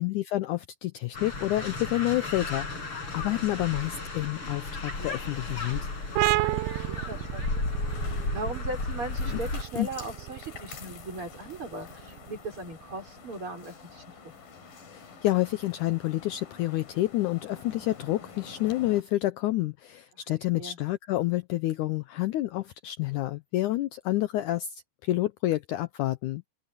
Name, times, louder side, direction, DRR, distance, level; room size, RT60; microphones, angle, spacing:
voice 1, 0.0-5.9 9.2-9.4 9.8-9.9 14.9-26.4, left 16 dB, 85° left, 1.7 m, -29 dB
sound 1, 1.1-9.6, left 3 dB, 35° left, 7.3 m, -34 dB
sound 2, 4.8-19.0, left 5 dB, 65° left, 5.0 m, -48 dB
sound 3, 6.2-13.5, right 18 dB, 85° right, 2.5 m, -32 dB
voice 2, 6.4-7.7 8.1-14.1 20.5-20.8, right 2 dB, 35° right, 5.9 m, -38 dB
open air
omnidirectional pair, 4.4 m